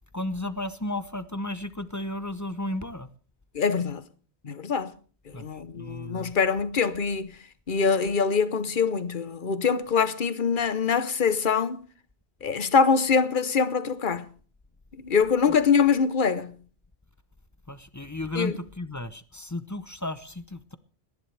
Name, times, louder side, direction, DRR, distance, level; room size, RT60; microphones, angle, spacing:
voice 1, 0.1-3.1 5.3-5.4 5.8-6.3 17.7-20.8, left 1 dB, 20° left, 0.6 m, -34 dB
voice 2, 3.5-4.0 4.4-4.9 5.3-7.4 7.7-11.8 12.4-14.3 15.0-16.6 18.3-18.6, left 5 dB, 50° left, 1.1 m, -24 dB
29.5 x 10.5 x 3.3 m
omnidirectional pair, 1.1 m